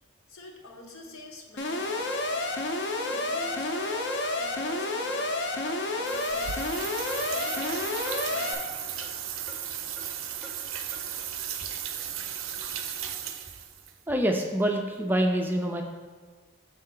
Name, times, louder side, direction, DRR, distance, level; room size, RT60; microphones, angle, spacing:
voice 1, 0.3-2.5 3.0-5.4 5.9-8.6, left 1 dB, 85° left, 1 dB, 1.0 m, -46 dB
Alarm, 1.6-8.5, left 2 dB, 55° left, 0.6 m, -30 dB
Clock, 3.7-3.9 4.2-4.3 4.7-4.8 5.2-5.3 5.6-5.8 6.1-6.2 6.6-6.7 7.1-7.2 7.6-7.7 8.0-8.2 8.5-8.6 9.0-9.1 9.5-9.6 10.0-10.1 10.4-10.5 10.9-11.0, equal, 5° left, 0.7 m, -46 dB
sound 1, 6.1-13.9, right 9 dB, 75° right, 0.5 m, -35 dB
voice 2, 14.1-15.8, right 1 dB, 10° right, 3 dB, 0.3 m, -26 dB
6.5 x 4.4 x 3.7 m, 1.5 s
head